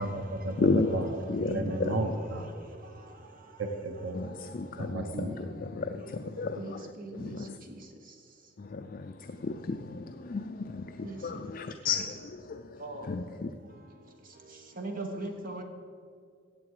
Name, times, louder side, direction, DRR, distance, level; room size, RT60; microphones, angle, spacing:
voice 1, 0.0-1.1 1.4-2.5 3.6-4.3 4.8-5.4, right 2 dB, 90° right, 1.0 m, -33 dB
voice 2, 0.6-2.0 4.1-7.6 8.6-13.5, left 3 dB, 45° left, 0.4 m, -33 dB
voice 3, 14.8-15.6, right 2 dB, 45° right, 1.3 m, -37 dB
16.0 x 8.5 x 4.8 m
head